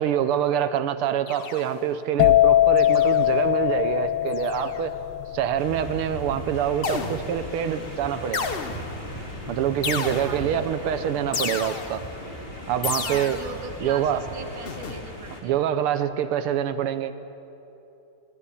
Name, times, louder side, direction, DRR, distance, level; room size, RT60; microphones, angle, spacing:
voice 1, 0.0-5.0 5.3-8.5 9.5-12.0 12.7-13.4 13.8-14.2 15.4-17.1, right 9 dB, 85° right, 11 dB, 1.7 m, -25 dB
sound 1, 1.3-1.9 2.8-3.4 4.3-4.9 6.8-7.5 8.3-9.1 9.8-10.6 11.3-12.1 12.8-13.6 14.6-15.1, left 5 dB, 50° left, 0.7 m, -32 dB
sound 2, 2.2-9.8 10.0-10.5, left 14 dB, 80° left, 1.5 m, -22 dB
sound 3, 5.6-15.4, equal, 25° left, 3.4 m, -38 dB
voice 2, 10.2-11.0 13.0-15.7, right 5 dB, 60° right, 5 dB, 2.1 m, -40 dB
22.5 x 16.0 x 8.4 m, 3.0 s
omnidirectional pair, 2.4 m